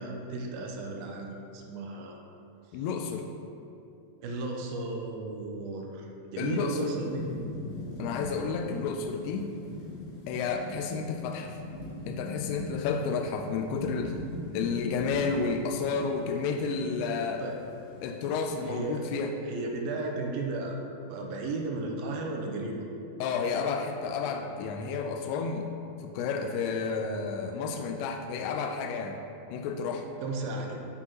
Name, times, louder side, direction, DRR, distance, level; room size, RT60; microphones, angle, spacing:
voice 1, 0.0-2.2 4.2-7.3 17.4-17.6 18.6-19.1 19.4-20.8 21.1-22.8 30.2-30.8, right 3 dB, 80° right, 1 dB, 2.3 m, -34 dB
voice 2, 2.7-3.2 6.4-6.9 8.0-9.5 10.3-11.6 12.1-14.1 14.5-17.4 18.0-19.3 23.2-25.7 26.0-29.2 29.5-30.1, left 5 dB, 85° left, 3 dB, 2.5 m, -31 dB
Thunderstorm / Rain, 6.4-18.7, left 1 dB, 70° left, 2.9 m, -41 dB
12.0 x 4.8 x 3.0 m, 2.7 s
omnidirectional pair, 4.5 m